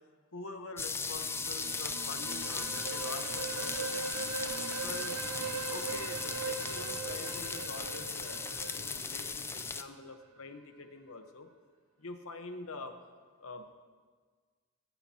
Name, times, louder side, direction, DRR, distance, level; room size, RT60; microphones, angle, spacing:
voice 1, 0.3-4.3 4.6-5.2 5.7-11.5 12.0-13.0 13.4-13.7, left 3 dB, 65° left, 6 dB, 1.1 m, -45 dB
sound 1, 0.8-9.8, left 4 dB, 10° left, 0.3 m, -37 dB
sound 2, 1.1-9.9, right 5 dB, 85° right, 0.7 m, -40 dB
21.5 x 10.0 x 2.9 m, 1.5 s
head